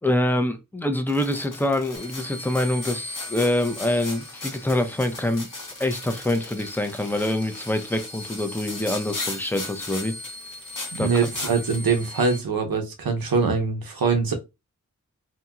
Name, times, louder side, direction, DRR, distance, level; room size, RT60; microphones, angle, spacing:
voice 1, 0.0-5.5 5.8-10.2 11.0-11.1, left 1 dB, 5° left, 0.6 m, -25 dB
sound 1, 1.1-11.8, left 2 dB, 65° left, 1.1 m, -38 dB
sound 2, 2.0-12.4, left 1 dB, 80° left, 1.3 m, -41 dB
voice 2, 10.9-14.3, right 5 dB, 85° right, 0.8 m, -23 dB
2.8 x 2.8 x 2.3 m
cardioid pair, 40°, 35 cm